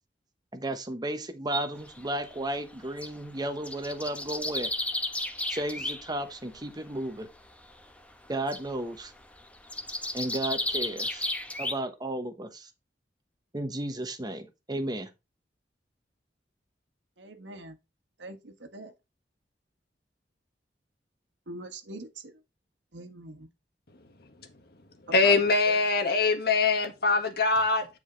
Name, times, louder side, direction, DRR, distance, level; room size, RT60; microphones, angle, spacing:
voice 1, 0.5-4.7 5.5-7.3 8.3-9.1 10.1-11.3 11.6-12.7 13.5-15.1, right 1 dB, 25° right, 1.1 m, -33 dB
sound 1, 1.7-3.2 3.5-6.2 6.4-6.9 7.5-8.0 8.2-11.7, left 2 dB, 10° left, 1.1 m, -34 dB
voice 2, 17.2-17.8 18.2-18.9 21.5-22.3 22.9-23.5 25.2-25.3 25.7-25.8, right 2 dB, 90° right, 1.5 m, -42 dB
voice 3, 25.1-27.9, left 3 dB, 60° left, 1.6 m, -23 dB
9.4 x 4.8 x 4.0 m
head